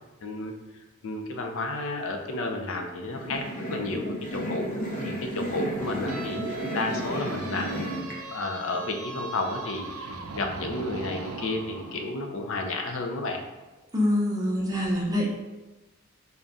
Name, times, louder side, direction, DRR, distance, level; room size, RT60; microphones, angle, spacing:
voice 1, 0.2-0.5 1.0-3.4 3.7-4.7 5.0-13.4, left 2 dB, 70° left, 3 dB, 0.5 m, -32 dB
sound 1, 3.0-8.2, right 1 dB, 40° left, 0.7 m, -33 dB
sound 2, 5.8-12.0, right 3 dB, 75° right, 0.4 m, -39 dB
voice 2, 13.9-15.3, left 1 dB, 20° right, -3 dB, 0.6 m, -25 dB
3.5 x 2.2 x 3.9 m, 1.1 s
head